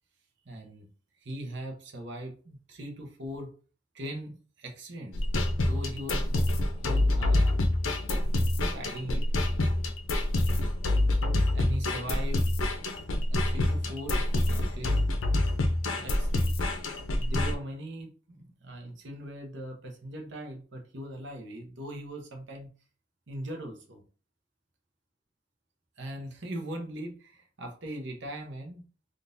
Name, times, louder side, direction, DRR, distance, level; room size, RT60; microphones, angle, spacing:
voice 1, 0.4-0.9 1.2-3.5 3.9-6.6 6.8-7.6 8.6-9.3 11.5-12.5 13.3-15.3 15.9-16.6 17.1-22.7 23.3-24.0 26.0-28.8, right 1 dB, 60° right, 2 dB, 0.8 m, -40 dB
sound 1, 5.1-17.5, left 1 dB, 85° left, 0.6 m, -27 dB
3.7 x 2.5 x 2.6 m, 0.39 s
head